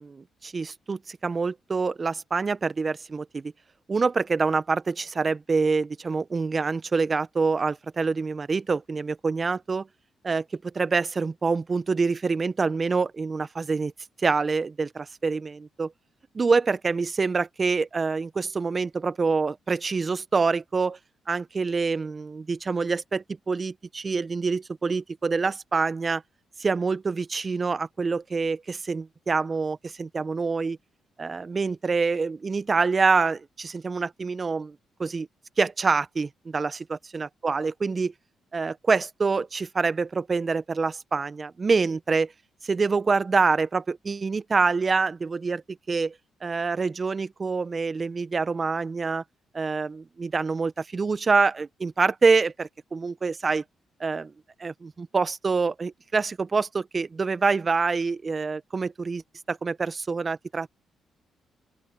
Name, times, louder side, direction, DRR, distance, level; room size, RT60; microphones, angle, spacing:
voice 1, 0.0-3.5 3.9-9.9 10.2-13.9 14.2-15.9 16.3-21.0 21.3-26.2 26.6-30.8 31.2-34.7 35.0-35.3 35.6-38.1 38.5-42.3 42.6-45.6 45.9-46.1 46.4-49.2 49.5-53.6 54.0-54.3 54.6-59.2 59.5-60.7, right 4 dB, 40° right, 1.3 m, -26 dB
open air
supercardioid pair, 55°, 0 cm